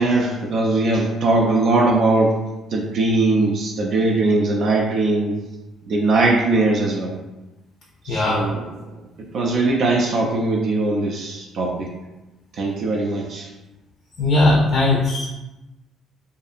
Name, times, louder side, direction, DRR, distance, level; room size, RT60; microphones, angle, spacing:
voice 1, 0.0-2.4 2.7-5.4 5.9-7.1 8.1-8.6 9.3-11.9 12.6-13.5, right 2 dB, 55° right, -1 dB, 0.3 m, -20 dB
voice 2, 8.1-8.4 14.2-15.3, left 2 dB, 50° left, -3 dB, 0.4 m, -18 dB
2.6 x 2.4 x 2.5 m, 1.0 s
cardioid pair, 155°, 0 cm